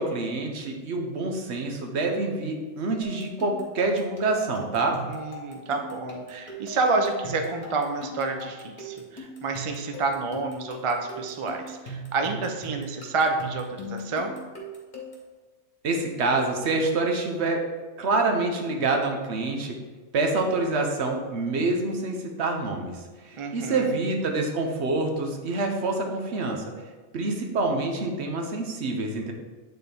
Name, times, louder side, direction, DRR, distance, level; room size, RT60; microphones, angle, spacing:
voice 1, 0.0-5.0 15.8-17.6 18.0-19.8 20.1-26.6 27.1-29.3, right 3 dB, 65° right, 3 dB, 1.1 m, -26 dB
sound 1, 3.0-15.3, right 1 dB, 40° left, 1.5 m, -40 dB
voice 2, 5.1-14.3 23.4-24.0, right 3 dB, 40° right, 4 dB, 0.5 m, -29 dB
9.1 x 4.1 x 3.4 m, 1.3 s
omnidirectional pair, 1.2 m